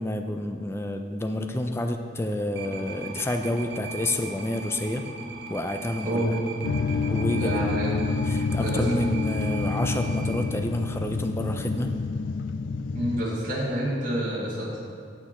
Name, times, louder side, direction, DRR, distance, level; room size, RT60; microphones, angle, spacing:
voice 1, 0.0-5.1 5.5-6.4 7.1-7.6 8.2-11.9, left 1 dB, 15° left, 5 dB, 0.4 m, -29 dB
sound 1, 2.6-10.4, right 4 dB, 60° right, 0.8 m, -39 dB
voice 2, 6.0-6.4 7.4-7.9 8.6-8.9 12.9-14.8, right 1 dB, 45° right, -7 dB, 1.8 m, -28 dB
sound 2, 6.6-13.3, left 4 dB, 85° left, 0.4 m, -28 dB
8.7 x 8.1 x 4.3 m, 2.2 s
head